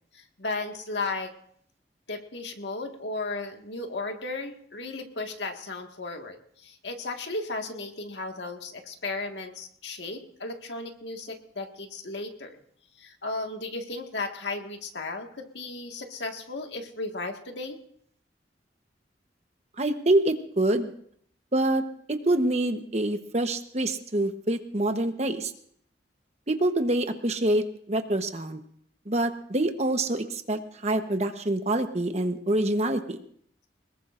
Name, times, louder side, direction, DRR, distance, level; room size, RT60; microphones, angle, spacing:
voice 1, 0.1-1.3 2.1-12.6 13.0-17.8, left 3 dB, 80° left, 3 dB, 1.8 m, -35 dB
voice 2, 19.8-20.9 21.5-21.8 22.1-25.5 26.5-28.6 29.1-33.2, right 1 dB, 35° right, 7 dB, 1.0 m, -26 dB
23.0 x 21.0 x 2.6 m, 0.63 s
head